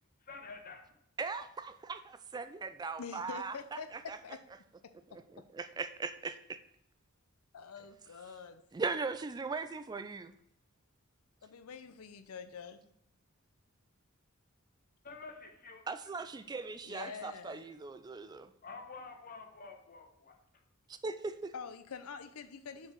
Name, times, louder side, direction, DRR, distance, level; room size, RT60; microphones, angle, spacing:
voice 1, 0.3-0.8 15.0-15.8 18.6-20.4, left 4 dB, 40° left, 4 dB, 1.2 m, -48 dB
voice 2, 1.2-3.6 4.1-4.2 5.1-6.6 8.7-10.3 15.9-18.5 20.9-21.5, right 4 dB, 20° right, 10 dB, 0.3 m, -39 dB
voice 3, 3.0-4.4 7.5-8.6 11.4-12.9 16.8-17.7 21.5-22.9, left 6 dB, 80° left, 10 dB, 0.5 m, -46 dB
5.9 x 4.6 x 6.2 m, 0.76 s
head